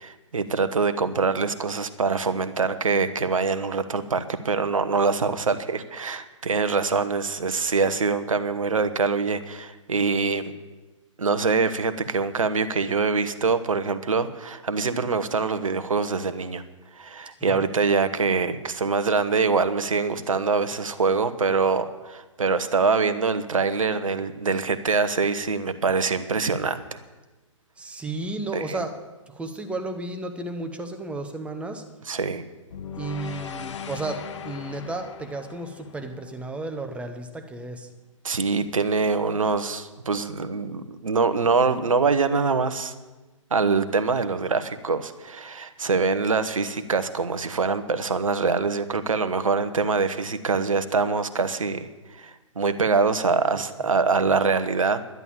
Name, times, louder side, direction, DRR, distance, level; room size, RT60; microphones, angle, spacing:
voice 1, 0.0-10.5 11.2-16.6 16.9-27.0 28.5-28.8 32.1-32.4 38.2-42.9 43.5-55.0, right 4 dB, 80° right, 12 dB, 1.1 m, -24 dB
voice 2, 27.8-28.9 29.3-31.8 33.0-37.9 53.5-53.6, right 2 dB, 5° right, 7 dB, 1.1 m, -33 dB
sound 1, 32.7-37.0, left 7 dB, 60° left, 1.4 m, -39 dB
11.0 x 10.5 x 7.4 m, 1.2 s
figure-of-eight pair, 125°, 17 cm